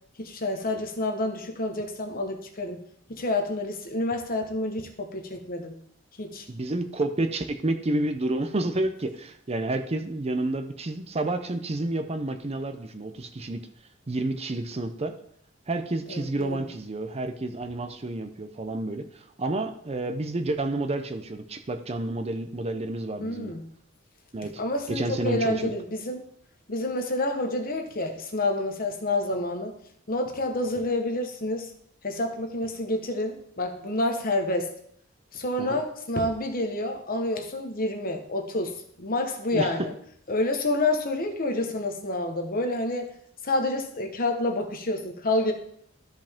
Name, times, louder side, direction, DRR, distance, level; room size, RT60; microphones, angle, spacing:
voice 1, 0.2-2.8 3.1-5.7 6.2-6.5 16.1-16.6 23.2-23.7 24.6-26.2 26.7-29.8 30.1-31.7 32.0-34.7 35.3-39.9 40.3-43.1 43.4-45.5, left 2 dB, 45° left, 4 dB, 1.2 m, -28 dB
voice 2, 6.5-13.7 14.1-15.1 15.7-23.5 24.3-24.5 24.9-25.7 35.6-35.8 39.5-39.7, right 2 dB, 30° right, 7 dB, 0.6 m, -30 dB
13.0 x 5.1 x 3.6 m, 0.67 s
head